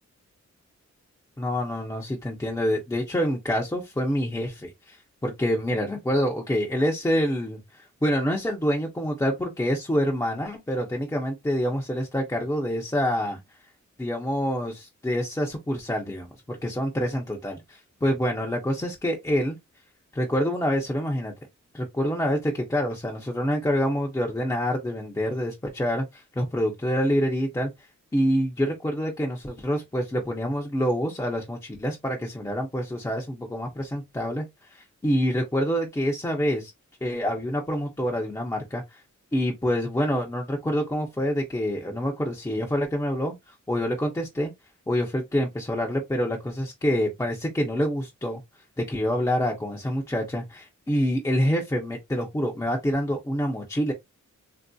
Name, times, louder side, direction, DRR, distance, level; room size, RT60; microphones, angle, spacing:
voice 1, 1.4-13.4 14.0-19.6 20.1-21.3 21.7-27.7 28.1-36.7 37.0-39.0 39.3-44.5 44.9-48.4 48.8-53.9, equal, 10° left, 0.5 m, -27 dB
3.4 x 2.6 x 2.2 m
wide cardioid pair, 175°, 30 cm